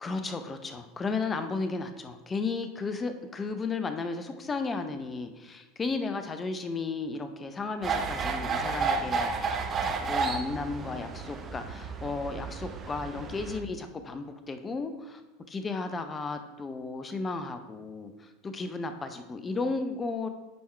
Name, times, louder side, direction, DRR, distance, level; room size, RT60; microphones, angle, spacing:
voice 1, 0.0-15.2 15.5-20.3, left 4 dB, 25° left, 8 dB, 0.6 m, -34 dB
sound 1, 7.8-13.6, right 4 dB, 35° right, 0.8 m, -32 dB
9.3 x 3.6 x 4.4 m, 1.1 s
hypercardioid pair, 85°, 0 cm